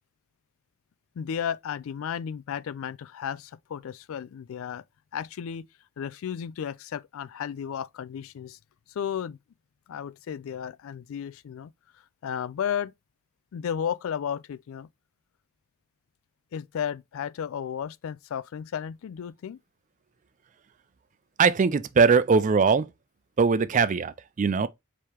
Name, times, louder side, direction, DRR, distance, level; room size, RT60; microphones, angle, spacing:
voice 1, 1.2-4.8 5.1-5.7 6.0-8.6 8.9-9.4 9.9-12.9 13.5-14.9 16.5-19.6, left 8 dB, 65° left, 0.3 m, -33 dB
voice 2, 21.4-22.9 23.4-24.7, right 5 dB, 35° right, 0.3 m, -21 dB
4.7 x 2.9 x 3.4 m
head